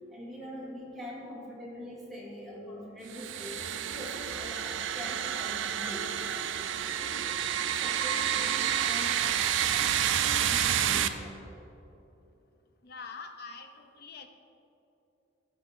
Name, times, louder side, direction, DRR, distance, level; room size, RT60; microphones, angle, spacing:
voice 1, 0.1-6.2 6.5-6.7 6.9-7.3 7.7-11.3, equal, ahead, -7 dB, 1.9 m, -43 dB
sound 1, 3.1-11.1, right 9 dB, 65° right, 0.4 m, -29 dB
voice 2, 12.8-14.3, left 4 dB, 50° left, 6 dB, 0.6 m, -44 dB
12.5 x 5.9 x 4.3 m, 2.9 s
head